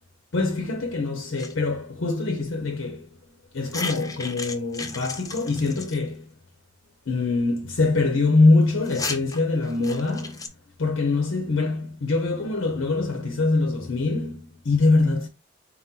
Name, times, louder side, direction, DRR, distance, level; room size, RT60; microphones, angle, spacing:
voice 1, 0.3-3.2 3.5-6.3 7.1-10.5 10.8-15.3, left 3 dB, 85° left, 0.7 m, -23 dB
sound 1, 1.4-1.5 3.6-6.0 8.7-10.5, left 4 dB, 20° left, 0.4 m, -34 dB
4.2 x 2.1 x 3.6 m
head